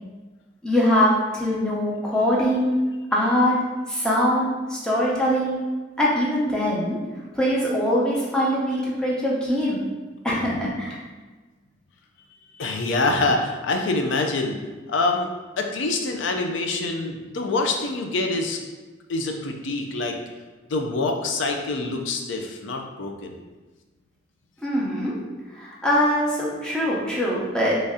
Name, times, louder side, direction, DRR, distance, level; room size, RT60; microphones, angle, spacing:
voice 1, 0.6-2.8 3.1-3.5 3.9-5.6 6.0-7.0 7.3-9.9 10.2-11.0 24.6-25.1 25.5-27.8, equal, 5° left, -6 dB, 0.7 m, -22 dB
voice 2, 12.6-14.6 14.9-15.3 15.6-18.6 19.1-20.2 20.7-23.4, left 3 dB, 70° left, 3 dB, 0.4 m, -25 dB
3.1 x 2.7 x 3.6 m, 1.3 s
head